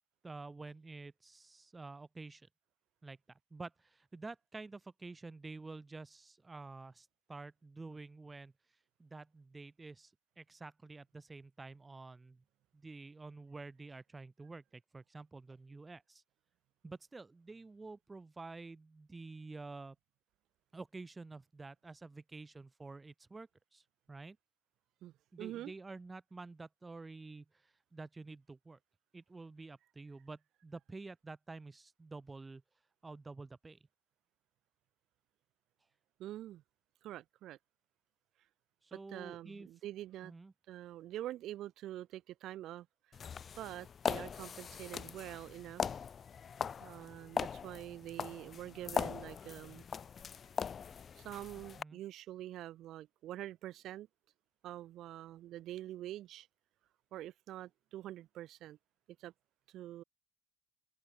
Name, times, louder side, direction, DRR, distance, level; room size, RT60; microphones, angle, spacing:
voice 1, 0.2-2.5 3.0-3.2 3.5-8.5 9.0-12.4 12.7-16.2 16.8-20.0 20.7-24.4 25.3-28.8 29.1-32.6 33.0-33.8 38.8-39.7 40.2-40.5 51.8-52.0, right 3 dB, 15° right, 2.9 m, -49 dB
voice 2, 25.0-25.7 36.2-36.6 37.0-37.6 38.9-40.3 40.7-42.9 43.1-43.2 43.5-46.0 46.8-49.8 51.2-54.1 54.6-56.5 57.1-58.8 59.2-59.3 59.7-60.0, right 13 dB, 65° right, 3.8 m, -46 dB
sound 1, 43.1-51.8, left 7 dB, 30° left, 0.9 m, -40 dB
open air
cardioid pair, 165°, 0 cm